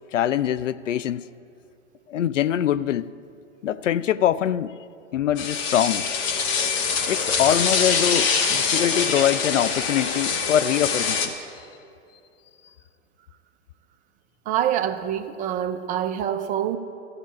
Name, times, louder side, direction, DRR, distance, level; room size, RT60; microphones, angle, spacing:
voice 1, 0.1-1.3 2.1-3.1 3.6-4.8 5.1-6.1 7.0-11.4, left 10 dB, 80° left, 0.5 m, -23 dB
sound 1, 5.4-11.3, left 5 dB, 30° left, 1.4 m, -24 dB
voice 2, 14.5-16.8, right 10 dB, 20° right, 0.6 m, -25 dB
13.5 x 8.4 x 8.4 m
hypercardioid pair, 115°, 37 cm